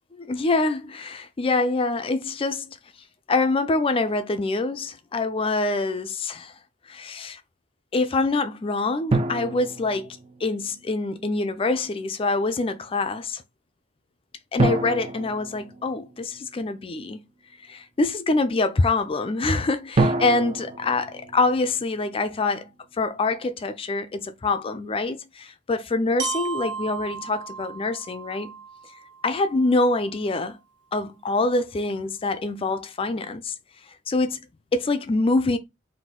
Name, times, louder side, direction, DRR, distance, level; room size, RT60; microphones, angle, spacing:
voice 1, 0.3-2.8 3.3-6.5 6.9-7.4 7.9-13.4 14.5-17.2 17.7-22.7 23.0-28.6 29.2-30.6 30.9-33.5 34.1-34.4 34.7-35.6, left 3 dB, 30° left, 0.4 m, -25 dB
sound 1, 9.1-10.7 14.6-16.5 20.0-22.2, right 2 dB, 30° right, 0.5 m, -27 dB
Glockenspiel, 26.2-30.2, right 6 dB, 65° right, 1.0 m, -35 dB
4.1 x 2.6 x 3.6 m
head